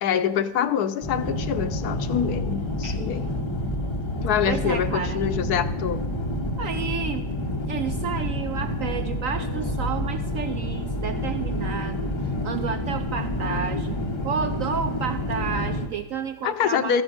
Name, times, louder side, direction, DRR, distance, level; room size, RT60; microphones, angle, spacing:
voice 1, 0.0-3.3 4.2-6.0 16.4-17.0, left 8 dB, 70° left, 11 dB, 1.1 m, -25 dB
sound 1, 1.0-15.9, left 1 dB, 30° left, 0.6 m, -28 dB
voice 2, 4.5-5.2 6.6-7.3 7.7-12.1 12.4-14.0 14.2-17.0, right 7 dB, 70° right, 10 dB, 0.7 m, -31 dB
14.0 x 9.7 x 6.4 m, 1.2 s
omnidirectional pair, 1.9 m